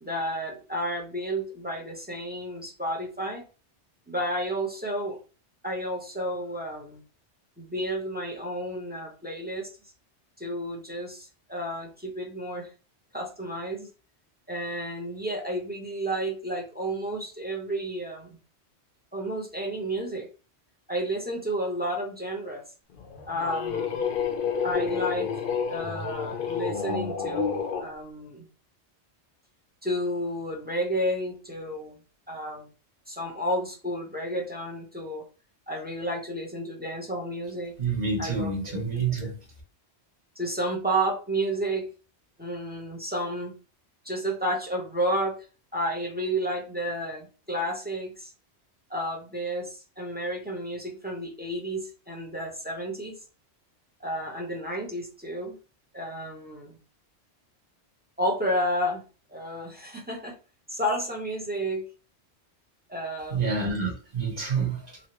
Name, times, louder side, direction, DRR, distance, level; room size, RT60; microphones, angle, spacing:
voice 1, 0.0-3.4 4.1-5.2 5.6-7.0 7.6-9.7 10.4-12.7 13.1-13.9 14.5-18.4 19.1-20.3 20.9-22.6 23.2-24.0 24.6-25.3 25.7-28.4 29.8-32.0 32.3-32.7 33.1-35.2 35.7-37.7 38.2-38.8 39.2-39.3 40.4-41.9 42.4-43.5 44.0-45.4 45.7-48.3 48.9-53.2 54.0-55.6 55.9-56.8 58.2-59.0 59.3-60.3 60.7-61.8 62.9-63.5, right 1 dB, 10° right, -1 dB, 0.6 m, -31 dB
sound 1, 23.0-27.9, left 6 dB, 60° left, 0.7 m, -30 dB
voice 2, 37.8-39.3 63.3-65.0, right 4 dB, 40° right, -1 dB, 1.1 m, -28 dB
3.1 x 2.7 x 2.9 m, 0.35 s
omnidirectional pair, 1.2 m